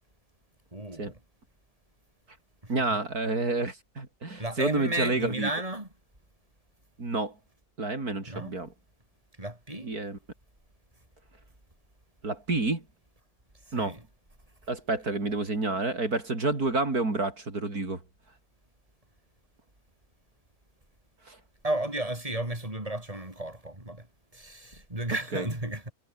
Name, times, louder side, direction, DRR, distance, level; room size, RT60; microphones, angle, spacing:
voice 1, 0.7-1.2 2.6-2.7 4.4-5.9 8.2-8.6 9.4-9.9 13.8-14.0 21.6-24.0 24.3-25.9, right 1 dB, 15° right, 5.2 m, -33 dB
voice 2, 2.7-5.5 7.0-7.3 7.8-8.7 9.8-10.2 12.2-12.8 13.7-14.0 14.7-18.0 21.3-21.4 25.3-25.5, right 3 dB, 45° right, 4.7 m, -29 dB
omnidirectional pair, 2.2 m